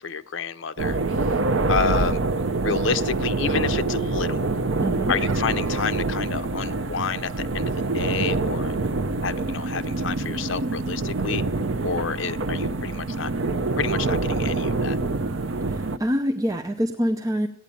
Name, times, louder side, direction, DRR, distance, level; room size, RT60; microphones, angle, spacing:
voice 1, 0.0-1.3 1.7-2.2 2.6-4.5 5.1-8.7 9.2-11.4 11.8-13.3 13.8-15.0, left 6 dB, 70° left, 11 dB, 0.7 m, -29 dB
sound 1, 0.8-16.0, right 3 dB, 75° right, 0.7 m, -25 dB
voice 2, 4.8-5.1 15.6-17.5, equal, 20° right, 6 dB, 0.6 m, -25 dB
15.0 x 9.5 x 8.5 m, 0.74 s
head